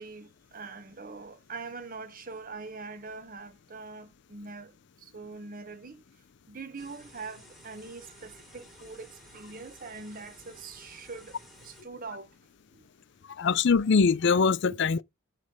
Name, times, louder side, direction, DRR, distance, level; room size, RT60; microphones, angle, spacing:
voice 1, 0.0-4.7 5.0-6.0 6.5-12.3 12.7-12.8 14.7-14.8, right 4 dB, 45° right, 1.1 m, -43 dB
sound 1, 6.8-11.8, equal, ahead, 3.5 m, -54 dB
voice 2, 13.3-15.0, left 5 dB, 60° left, 0.5 m, -23 dB
9.7 x 3.3 x 5.2 m
head